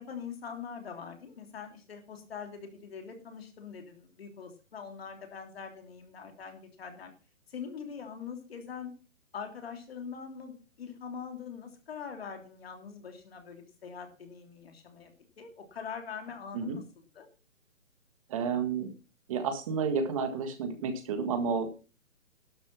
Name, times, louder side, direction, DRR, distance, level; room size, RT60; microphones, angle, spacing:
voice 1, 0.0-7.1 7.5-8.9 9.3-16.8 17.1-17.3, left 6 dB, 50° left, 5 dB, 3.2 m, -43 dB
voice 2, 18.3-18.9 19.3-21.7, right 5 dB, 25° right, 8 dB, 1.7 m, -31 dB
12.0 x 7.2 x 5.9 m, 0.34 s
hypercardioid pair, 165°, 39 cm